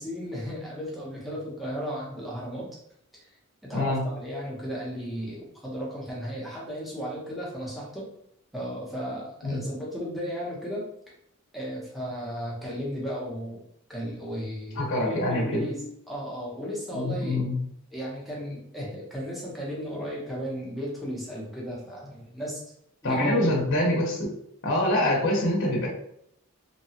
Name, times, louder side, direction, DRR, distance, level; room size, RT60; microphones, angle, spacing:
voice 1, 0.0-2.7 3.1-3.3 3.7-8.1 8.5-10.9 11.5-13.6 13.9-17.4 17.9-22.6 23.0-23.5, equal, ahead, -6 dB, 0.8 m, -34 dB
voice 2, 14.7-15.6 16.9-17.6 23.0-24.3 24.6-25.9, left 1 dB, 60° left, -1 dB, 0.6 m, -25 dB
2.8 x 2.2 x 2.8 m, 0.72 s
head